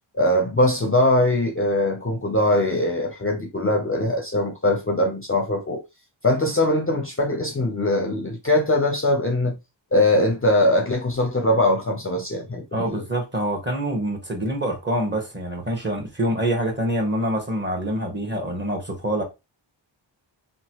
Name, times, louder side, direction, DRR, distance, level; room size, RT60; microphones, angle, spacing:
voice 1, 0.1-5.8 6.2-9.6 9.9-13.0, left 1 dB, 30° left, 0.5 m, -21 dB
voice 2, 12.7-19.2, right 1 dB, 25° right, 1.0 m, -25 dB
2.9 x 2.2 x 2.8 m
wide cardioid pair, 80°, 47 cm